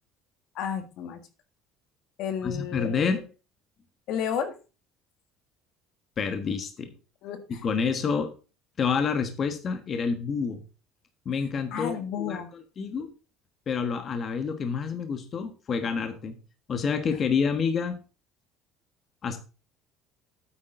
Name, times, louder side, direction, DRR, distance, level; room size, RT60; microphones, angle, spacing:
voice 1, 0.5-1.2 2.2-3.1 4.1-4.5 7.2-7.6 11.7-12.5, left 8 dB, 65° left, 9 dB, 1.5 m, -32 dB
voice 2, 2.4-3.3 6.2-6.9 7.6-8.3 8.8-10.6 11.2-12.0 12.3-12.4 12.8-13.1 13.7-16.4 16.7-18.0 19.2-19.4, left 5 dB, 35° left, 8 dB, 1.3 m, -28 dB
8.9 x 8.6 x 3.8 m, 0.33 s
cardioid pair, 130°, 0 cm